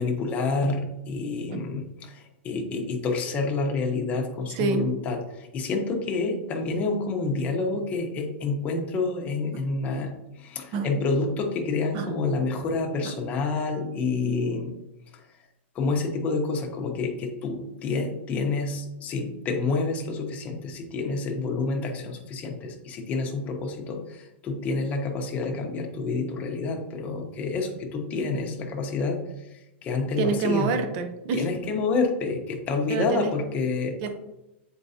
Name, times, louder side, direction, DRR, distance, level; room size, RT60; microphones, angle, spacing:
voice 1, 0.0-14.7 15.7-29.2 29.8-30.8 31.3-34.1, left 3 dB, 20° left, 2 dB, 0.9 m, -28 dB
voice 2, 4.5-4.8 10.7-10.9 11.9-12.1 13.0-13.1 30.2-31.5 32.9-33.3 34.0-34.1, right 4 dB, 40° right, 7 dB, 0.7 m, -27 dB
7.7 x 4.6 x 2.8 m, 0.92 s
supercardioid pair, 160°, 7 cm